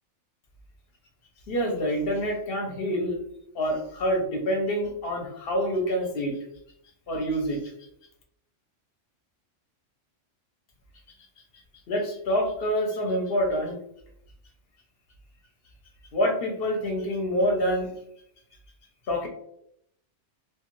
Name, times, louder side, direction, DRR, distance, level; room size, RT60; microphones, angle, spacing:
voice 1, 1.5-3.2 3.5-6.4 7.1-7.7 11.9-13.8 16.1-17.9 19.1-19.3, equal, 55° left, 1 dB, 0.8 m, -26 dB
2.4 x 2.4 x 3.0 m, 0.73 s
omnidirectional pair, 1.3 m